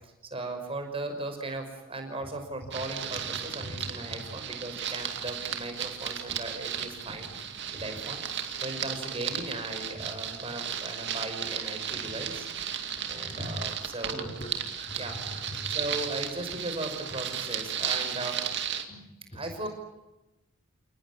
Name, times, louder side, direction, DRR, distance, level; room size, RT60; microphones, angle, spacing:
voice 1, 0.0-7.3 7.7-8.2 8.6-12.5 13.1-14.3 14.9-15.2 15.7-18.4 19.3-19.7, right 2 dB, 25° right, 5 dB, 5.8 m, -37 dB
sound 1, 2.7-18.8, right 8 dB, 50° right, 2.4 m, -35 dB
voice 2, 13.2-13.5 14.1-15.5 18.9-19.4, equal, 25° left, 2 dB, 3.7 m, -41 dB
29.0 x 19.5 x 9.8 m, 0.98 s
head